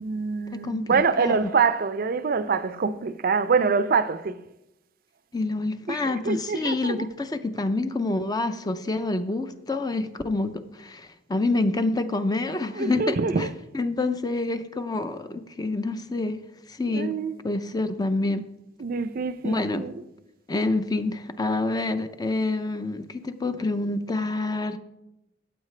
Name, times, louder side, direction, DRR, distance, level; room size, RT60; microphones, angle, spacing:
voice 1, 0.0-4.4 5.9-7.1 12.7-13.5 16.9-17.4 18.8-20.0, right 5 dB, 50° right, 0.4 m, -25 dB
voice 2, 0.5-1.5 5.3-13.5 13.7-16.4 16.7-17.1 17.4-18.4 19.4-19.8 20.5-24.8, left 2 dB, 20° left, 0.5 m, -27 dB
14.0 x 8.1 x 3.2 m
head